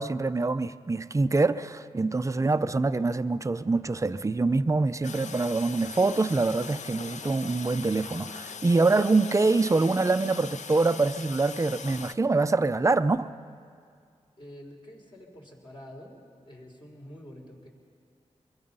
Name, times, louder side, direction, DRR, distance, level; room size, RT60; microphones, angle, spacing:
voice 1, 0.0-13.3, right 3 dB, 25° right, 12 dB, 0.5 m, -25 dB
Toilet flush, 5.0-12.1, left 6 dB, 75° left, 0.5 m, -41 dB
voice 2, 14.4-16.2 16.5-17.7, equal, 45° left, 0 dB, 3.7 m, -47 dB
23.0 x 23.0 x 5.5 m, 2.2 s
wide cardioid pair, 115°, 12 cm